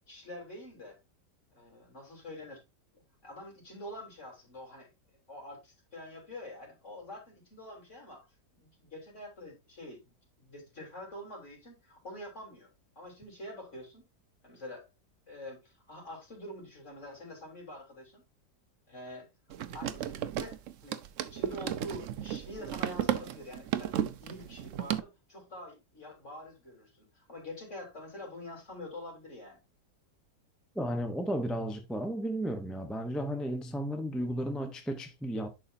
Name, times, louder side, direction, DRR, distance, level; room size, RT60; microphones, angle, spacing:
voice 1, 0.1-1.0 1.5-2.6 2.9-4.9 5.3-8.3 8.6-12.7 13.0-14.0 14.4-14.9 15.3-18.2 18.9-19.3 19.7-21.0 21.3-29.6, left 1 dB, 45° left, 3.8 m, -46 dB
sound 1, 19.5-25.0, right 10 dB, 65° right, 0.8 m, -34 dB
voice 2, 30.7-35.5, equal, ahead, 0.3 m, -34 dB
11.0 x 4.8 x 2.7 m
omnidirectional pair, 1.8 m